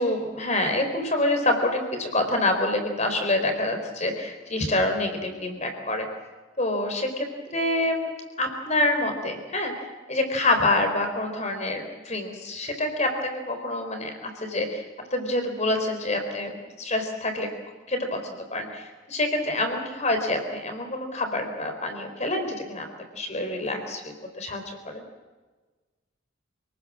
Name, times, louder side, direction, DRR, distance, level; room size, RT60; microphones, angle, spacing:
voice 1, 0.0-6.1 6.6-8.1 8.4-14.9 15.1-17.5 17.9-22.9 23.1-25.0, left 1 dB, 35° left, 5 dB, 4.2 m, -27 dB
28.0 x 19.0 x 7.6 m, 1.3 s
head